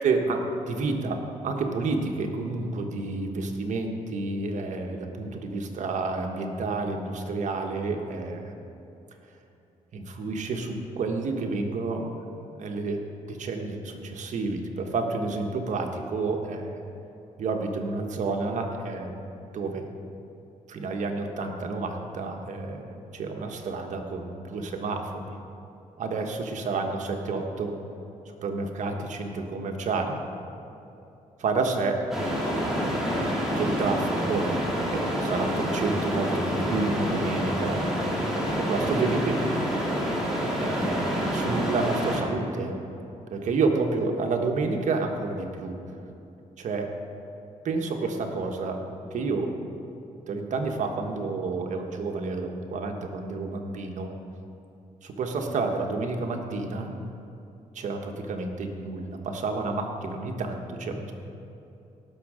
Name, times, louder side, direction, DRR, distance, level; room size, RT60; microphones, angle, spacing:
voice 1, 0.0-8.5 9.9-12.2 12.5-16.8 17.4-19.2 19.5-19.9 20.7-25.4 26.0-27.8 28.4-30.2 31.4-32.0 33.6-34.5 34.9-37.8 38.6-39.4 40.6-42.7 43.3-45.8 46.6-46.9 47.6-48.8 49.1-49.5 50.3-54.1 55.0-56.9 57.7-61.1, right 3 dB, 65° right, 3 dB, 1.4 m, -30 dB
sound 1, 32.1-42.2, equal, 5° right, 3.0 m, -27 dB
17.5 x 6.5 x 5.0 m, 2.8 s
cardioid pair, 95°, 14 cm